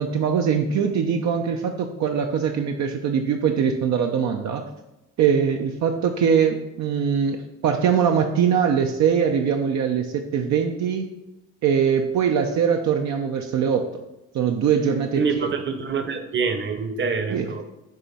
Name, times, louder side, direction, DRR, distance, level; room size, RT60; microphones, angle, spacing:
voice 1, 0.0-4.6 5.2-11.1 11.6-13.9 14.3-15.2 17.3-17.5, right 7 dB, 65° right, 3 dB, 0.6 m, -22 dB
voice 2, 15.2-17.7, right 5 dB, 40° right, 7 dB, 0.9 m, -26 dB
7.6 x 3.0 x 4.1 m, 0.94 s
cardioid pair, 90°, 30 cm